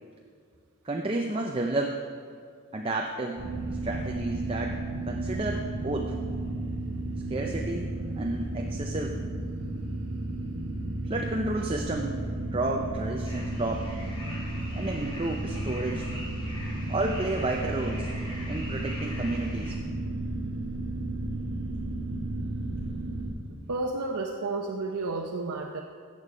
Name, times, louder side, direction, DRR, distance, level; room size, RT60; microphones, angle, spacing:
voice 1, 0.8-2.0 2.7-3.4 3.8-4.8 5.1-6.1 7.3-9.2 11.0-13.9 14.7-16.1 16.9-18.1 18.5-19.8, right 2 dB, 25° right, 1 dB, 0.6 m, -31 dB
sound 1, 3.4-23.3, right 1 dB, 55° right, 2.5 m, -33 dB
sound 2, 13.2-19.7, left 1 dB, 20° left, 2.5 m, -43 dB
voice 2, 23.7-25.8, right 3 dB, 80° right, 2 dB, 0.7 m, -31 dB
14.0 x 8.5 x 5.0 m, 2.2 s
head